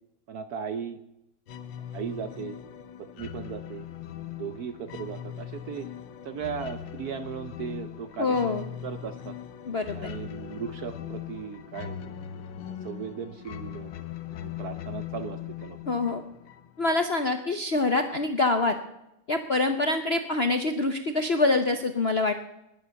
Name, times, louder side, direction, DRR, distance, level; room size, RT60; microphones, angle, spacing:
voice 1, 0.3-1.0 1.9-2.6 3.0-3.8 4.4-5.9 6.2-9.4 9.9-12.2 12.7-13.9 14.4-16.0, right 7 dB, 65° right, 11 dB, 1.0 m, -37 dB
sound 1, 1.5-17.0, left 10 dB, 70° left, 1.6 m, -40 dB
voice 2, 8.2-8.6 9.7-10.1 15.9-16.2 16.8-18.8 19.3-22.3, left 3 dB, 50° left, 7 dB, 0.7 m, -25 dB
20.0 x 7.7 x 7.0 m, 0.88 s
omnidirectional pair, 2.3 m